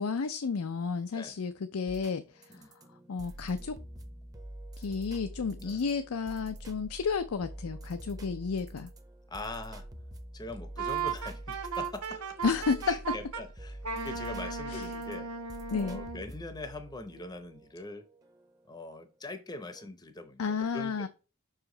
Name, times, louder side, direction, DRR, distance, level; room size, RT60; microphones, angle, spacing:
voice 1, 0.0-2.4 3.1-3.8 4.8-8.9 12.4-12.8 14.7-14.9 15.7-16.0 20.4-21.1, left 5 dB, 75° left, 0.5 m, -32 dB
sound 1, 1.9-18.9 19.8-19.9, right 1 dB, 15° right, 0.7 m, -46 dB
voice 2, 9.3-9.9 10.3-12.3 12.9-15.3 15.7-18.1 18.7-21.1, left 2 dB, 20° left, 0.7 m, -42 dB
Wind instrument woodwind instrument, 10.8-13.4 13.8-16.2, right 5 dB, 85° right, 1.1 m, -36 dB
5.8 x 5.0 x 3.8 m
head